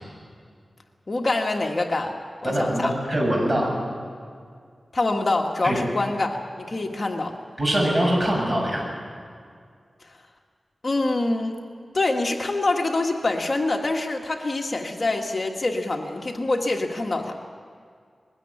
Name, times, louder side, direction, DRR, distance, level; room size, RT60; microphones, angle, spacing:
voice 1, 1.1-2.2 2.4-2.9 4.9-7.3 10.0-10.2 10.8-11.6 11.9-17.3, left 2 dB, 45° left, 2 dB, 1.5 m, -25 dB
voice 2, 2.4-3.7 5.6-5.7 7.6-8.9, right 1 dB, 30° right, -2 dB, 7.3 m, -23 dB
21.0 x 16.5 x 9.9 m, 2.2 s
wide cardioid pair, 105°, 0 cm